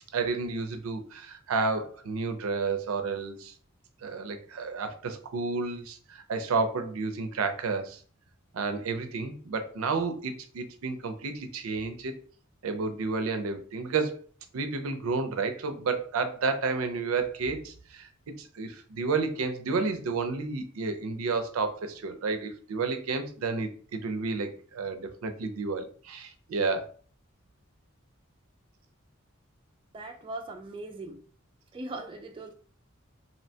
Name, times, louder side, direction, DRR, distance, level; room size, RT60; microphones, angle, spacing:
voice 1, 0.1-3.5 4.0-8.0 8.5-12.2 12.6-14.2 14.5-18.1 18.4-26.9, right 4 dB, 90° right, 0.4 m, -31 dB
voice 2, 29.9-31.2 31.7-32.5, right 2 dB, 25° right, 0.3 m, -39 dB
2.7 x 2.1 x 2.6 m
head